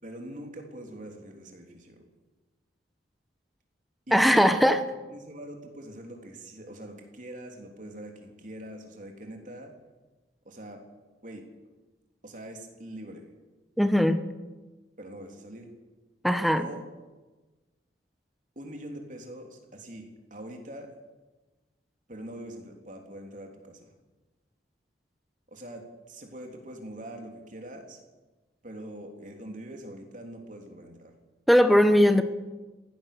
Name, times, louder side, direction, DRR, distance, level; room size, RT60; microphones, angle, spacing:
voice 1, 0.0-2.0 4.1-4.7 5.1-9.7 10.5-10.8 11.2-11.4 12.2-13.3 15.0-15.7 16.6-16.8 18.6-20.9 22.1-23.9 25.5-28.0 28.6-31.1, right 1 dB, 45° right, 2 dB, 3.5 m, -43 dB
voice 2, 4.1-4.8 13.8-14.2 16.2-16.7 31.5-32.2, equal, ahead, 8 dB, 1.2 m, -19 dB
22.5 x 16.5 x 6.9 m, 1.2 s
head